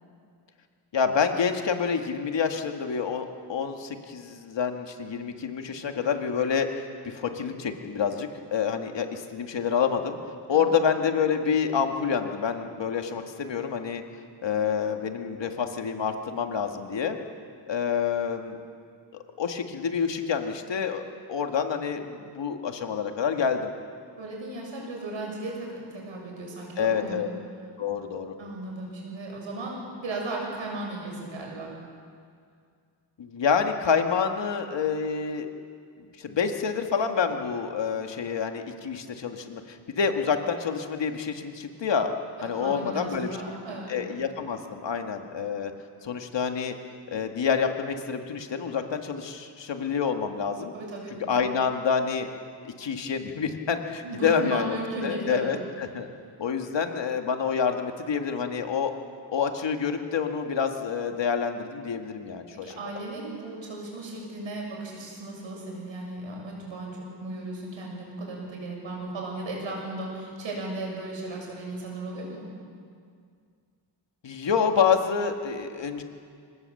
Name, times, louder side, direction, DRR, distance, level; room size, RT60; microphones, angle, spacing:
voice 1, 0.9-10.2 10.5-14.0 14.4-17.2 17.7-18.6 19.4-21.0 21.3-23.7 26.8-27.3 27.8-28.4 33.2-35.5 36.2-42.1 42.4-43.4 43.9-45.7 46.0-46.8 47.1-50.7 51.3-52.3 52.8-56.1 56.4-58.9 59.3-62.7 74.2-76.0, left 6 dB, 70° left, 5 dB, 2.1 m, -27 dB
voice 2, 24.2-27.2 28.4-31.7 42.4-44.0 50.7-51.2 54.0-55.6 62.5-72.5, right 2 dB, 85° right, -1 dB, 7.6 m, -35 dB
26.5 x 19.0 x 7.9 m, 2.2 s
wide cardioid pair, 130°, 45 cm